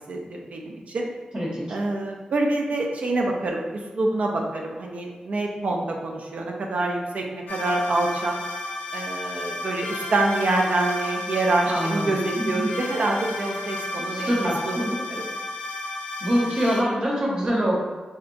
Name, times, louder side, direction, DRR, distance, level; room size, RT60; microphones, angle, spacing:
voice 1, 0.1-1.1 1.7-8.4 8.9-14.4 14.6-15.2, right 2 dB, 65° right, 1 dB, 0.4 m, -26 dB
sound 1, 7.5-16.8, left 2 dB, 80° left, 0.5 m, -32 dB
voice 2, 11.7-12.6 14.1-15.0 16.2-17.7, equal, 30° right, -5 dB, 0.8 m, -25 dB
3.7 x 2.2 x 2.5 m, 1.3 s
wide cardioid pair, 140°, 3 cm